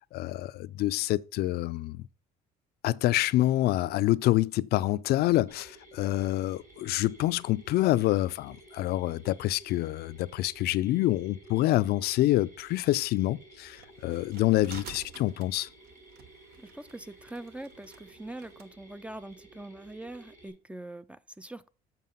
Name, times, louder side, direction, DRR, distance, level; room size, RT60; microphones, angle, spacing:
voice 1, 0.1-2.0 2.8-15.7, left 16 dB, 70° left, 0.4 m, -27 dB
Mechanisms, 5.5-20.5, right 2 dB, 55° right, 5.4 m, -54 dB
sound 1, 13.8-18.7, right 7 dB, 70° right, 1.0 m, -50 dB
voice 2, 16.6-21.7, right 1 dB, 5° right, 0.4 m, -43 dB
7.5 x 5.9 x 5.4 m
cardioid pair, 110°, 17 cm